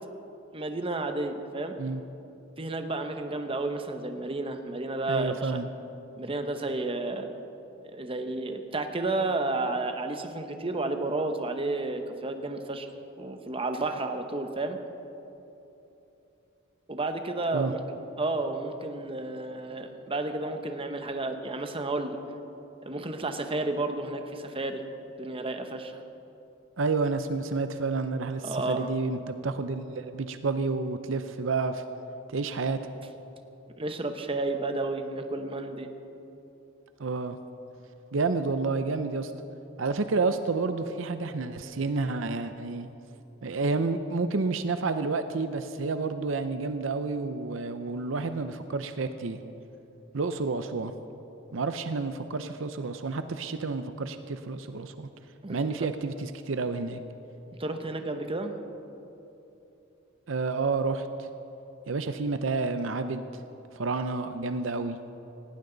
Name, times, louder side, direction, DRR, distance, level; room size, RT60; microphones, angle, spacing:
voice 1, 0.5-1.8 2.6-5.5 6.2-7.3 7.8-12.9 13.2-14.8 16.9-17.8 18.2-22.2 22.8-24.8 25.2-25.9 28.4-28.9 33.8-35.9 55.4-55.9 57.6-58.5, right 2 dB, 30° right, 6 dB, 1.0 m, -31 dB
voice 2, 5.1-5.7 17.5-17.7 26.8-31.8 32.3-32.8 37.0-37.4 38.1-39.3 39.8-42.9 43.4-49.4 50.1-50.9 51.5-55.1 55.5-57.0 60.3-61.3 61.9-63.4 63.7-65.0, right 3 dB, 70° right, 9 dB, 0.6 m, -30 dB
18.5 x 18.0 x 4.0 m, 2.9 s
head